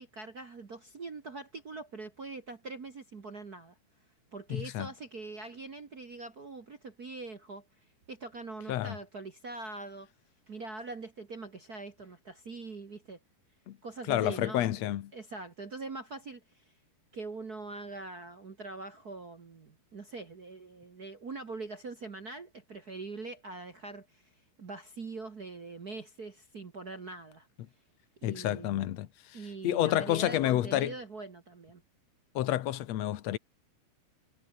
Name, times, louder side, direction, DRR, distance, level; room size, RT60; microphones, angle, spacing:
voice 1, 0.0-3.7 4.3-7.6 8.1-10.1 10.5-13.2 13.8-16.6 17.1-24.3 24.6-27.5 28.2-29.0 29.3-31.8, right 3 dB, 55° right, 1.0 m, -43 dB
voice 2, 4.5-4.9 8.7-9.0 13.7-13.8 14.1-15.1 28.2-29.4 29.6-30.9 32.3-33.4, left 13 dB, 85° left, 1.4 m, -29 dB
omnidirectional pair, 4.6 m